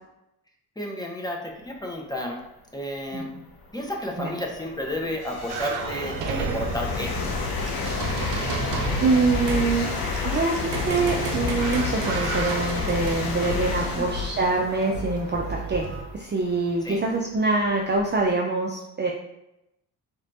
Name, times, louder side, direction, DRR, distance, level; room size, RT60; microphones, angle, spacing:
voice 1, 0.8-2.4 2.7-3.3 3.7-7.1 13.9-14.1 16.8-17.0, left 1 dB, 10° left, 0 dB, 1.0 m, -31 dB
sound 1, 2.8-2.9 3.5-18.3, left 4 dB, 50° left, 0.9 m, -31 dB
sound 2, 5.5-16.0, right 4 dB, 65° right, 0.7 m, -32 dB
voice 2, 8.2-9.9 10.2-15.9 16.1-19.1, right 3 dB, 25° right, -2 dB, 0.6 m, -25 dB
4.3 x 3.2 x 2.6 m, 0.88 s
hypercardioid pair, 50°, 47 cm